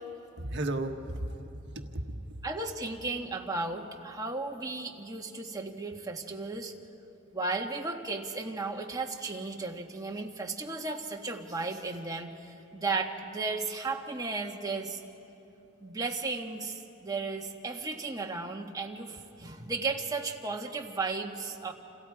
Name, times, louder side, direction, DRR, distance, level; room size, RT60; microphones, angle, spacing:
voice 1, 0.4-2.4, right 1 dB, 55° right, 4 dB, 1.4 m, -35 dB
voice 2, 2.4-6.7 7.3-15.0 15.8-21.7, right 3 dB, 15° right, 1 dB, 1.5 m, -35 dB
29.5 x 28.5 x 4.8 m, 2.9 s
head